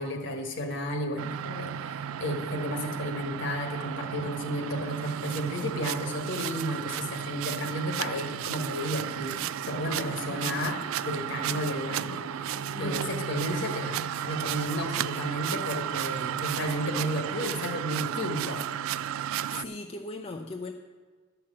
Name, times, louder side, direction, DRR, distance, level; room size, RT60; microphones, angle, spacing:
voice 1, 0.0-9.4 9.7-10.8 11.0-18.6, equal, 60° left, 4 dB, 1.5 m, -33 dB
sound 1, 1.2-19.6, right 9 dB, 85° right, 0.3 m, -33 dB
sound 2, 5.3-13.8, left 2 dB, 85° left, 1.2 m, -49 dB
voice 2, 19.5-20.7, left 2 dB, 30° left, 3 dB, 0.5 m, -38 dB
11.5 x 5.9 x 7.6 m, 1.4 s
head